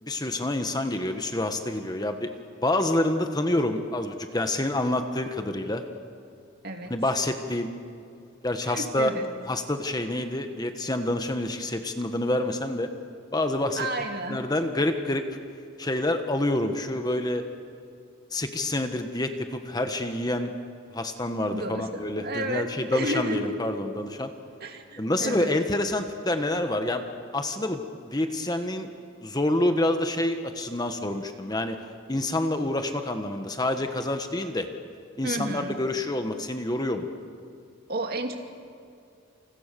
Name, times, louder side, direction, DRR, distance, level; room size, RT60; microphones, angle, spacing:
voice 1, 0.0-2.3 2.6-5.8 6.9-7.7 8.4-9.1 9.5-12.9 13.3-13.9 14.3-15.2 15.8-17.5 18.3-20.5 20.9-24.3 25.0-27.1 27.3-28.9 29.2-31.8 32.1-34.7 35.2-37.1, left 1 dB, 20° left, 6 dB, 1.4 m, -27 dB
voice 2, 8.6-9.2 13.8-14.4 21.5-23.5 24.6-25.5 35.2-35.8 37.9-38.4, right 1 dB, 45° right, 4 dB, 2.5 m, -32 dB
29.0 x 27.5 x 6.9 m, 2.5 s
head